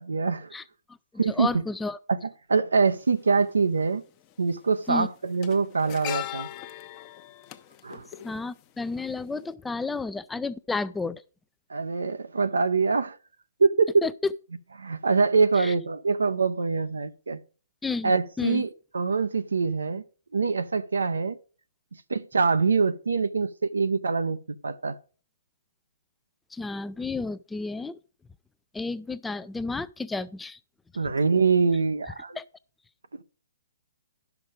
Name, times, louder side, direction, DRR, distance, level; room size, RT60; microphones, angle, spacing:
voice 1, 0.1-0.5 1.2-1.6 2.1-2.2 2.5-4.0 4.4-6.5 7.8-8.0 11.7-13.2 13.6-13.9 14.8-17.4 18.0-20.0 20.3-21.4 22.1-25.0 31.0-32.4, right 4 dB, 80° right, 0.6 m, -24 dB
voice 2, 1.3-2.0 4.9-5.1 8.2-11.2 14.0-14.3 15.6-15.7 17.8-18.1 18.4-18.6 26.5-28.0 28.7-30.6 32.4-32.5, left 3 dB, 5° left, 0.4 m, -31 dB
sound 1, 2.9-3.0 4.2-4.5 4.8-9.1 9.3-9.5, left 13 dB, 30° left, 0.8 m, -39 dB
11.0 x 5.9 x 5.0 m
figure-of-eight pair, 130°, 0 cm